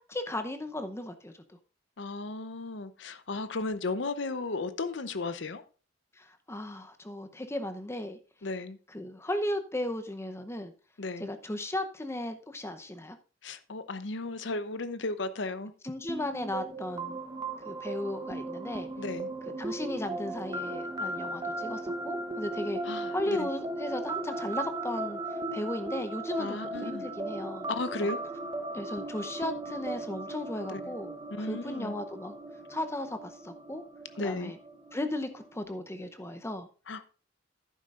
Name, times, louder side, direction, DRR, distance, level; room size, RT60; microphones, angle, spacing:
voice 1, 0.0-1.3 6.2-8.2 8.9-10.7 11.2-13.2 15.8-17.2 17.6-18.9 19.6-22.8 23.1-25.2 25.5-27.7 28.0-28.1 28.7-32.3 32.7-33.8 34.2-34.6 34.9-36.7, left 1 dB, 15° left, 0.7 m, -36 dB
voice 2, 2.0-5.6 8.4-8.8 11.0-11.3 13.4-15.7 19.0-19.3 22.8-23.5 26.4-27.1 27.7-28.2 30.7-31.0 31.3-31.9 34.2-34.5 36.9-37.1, left 3 dB, 65° left, 0.7 m, -35 dB
sound 1, 16.1-35.6, right 2 dB, 20° right, 0.8 m, -37 dB
11.0 x 9.6 x 2.5 m
head